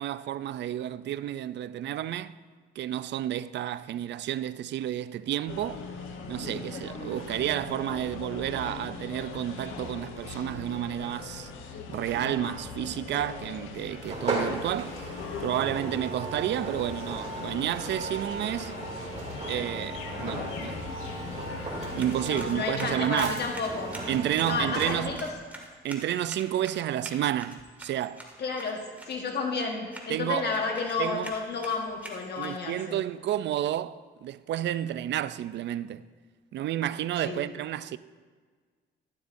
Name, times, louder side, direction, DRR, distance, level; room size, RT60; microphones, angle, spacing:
voice 1, 0.0-2.3 2.8-5.8 6.3-11.5 11.9-15.1 15.4-18.7 19.5-20.8 21.9-23.4 24.1-25.2 25.8-28.2 30.1-30.5 31.0-31.3 32.4-36.0 36.5-38.0, right 12 dB, 65° right, 0.4 m, -31 dB
sound 1, 5.5-23.1, left 5 dB, 90° left, 1.1 m, -40 dB
sound 2, 14.0-25.3, right 2 dB, 35° right, 2.5 m, -36 dB
sound 3, 21.7-32.8, right 1 dB, 10° right, 2.0 m, -47 dB
voice 2, 22.2-23.9 24.4-25.3 28.4-28.8 29.1-33.0 37.2-37.5, left 4 dB, 55° left, 1.3 m, -31 dB
12.5 x 11.5 x 2.6 m
cardioid pair, 90°, 20 cm